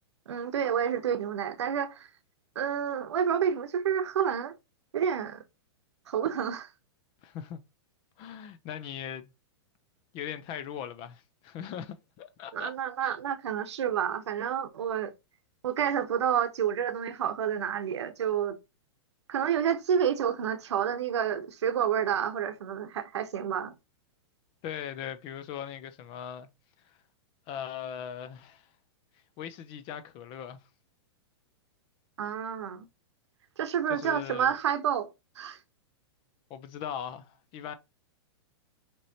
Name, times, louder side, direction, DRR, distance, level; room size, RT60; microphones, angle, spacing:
voice 1, 0.3-2.1 2.6-4.5 4.9-5.4 6.1-6.7 12.5-15.1 15.6-18.6 19.3-23.7 32.2-32.9 33.6-35.1 35.4-35.6, right 8 dB, 80° right, 0.9 m, -29 dB
voice 2, 7.2-7.6 8.2-9.3 10.1-12.7 13.0-13.2 24.6-26.5 26.8-27.0 27.5-28.7 29.4-30.6 33.9-34.6 36.5-37.7, left 9 dB, 35° left, 0.5 m, -39 dB
6.0 x 3.0 x 2.8 m
hypercardioid pair, 125°, 14 cm